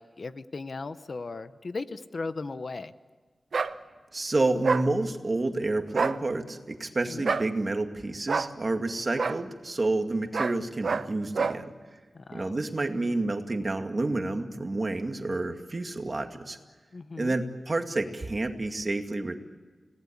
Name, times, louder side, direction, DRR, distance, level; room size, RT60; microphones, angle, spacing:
voice 1, 0.0-2.9 7.1-7.3 12.1-12.6 16.9-17.4, left 3 dB, 55° left, 12 dB, 0.9 m, -37 dB
sound 1, 3.5-3.7 4.6-4.9 5.9-6.2 7.2-7.5 8.3-8.5 9.2-9.4 10.3-10.6 10.8-11.1 11.3-11.6, right 4 dB, 75° right, 0.9 m, -27 dB
voice 2, 4.1-11.7 12.3-16.6 17.2-19.3, right 2 dB, 35° right, 5 dB, 2.1 m, -29 dB
30.0 x 18.5 x 8.6 m, 1.4 s
wide cardioid pair, 115°, 0 cm